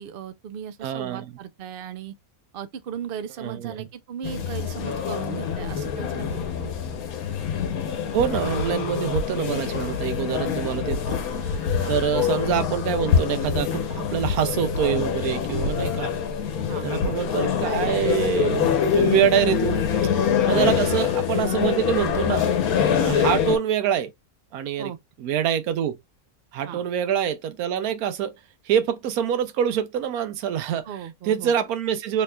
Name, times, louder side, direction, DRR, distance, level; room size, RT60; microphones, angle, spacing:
voice 1, 0.0-2.1 2.5-7.0 11.8-11.9 16.7-16.9 20.5-20.6 23.0-23.2 24.8-25.0 26.6-26.8 30.8-31.5, right 8 dB, 60° right, 0.6 m, -37 dB
voice 2, 0.8-1.3 3.4-3.9 8.1-11.2 11.4-16.1 16.8-19.8 20.5-22.5 23.0-24.1 24.5-24.9 25.2-26.0 26.5-28.3 28.7-30.9 31.2-32.2, right 9 dB, 90° right, 1.1 m, -25 dB
sound 1, 4.2-23.6, left 7 dB, 85° left, 1.3 m, -25 dB
3.9 x 3.3 x 2.2 m
omnidirectional pair, 1.5 m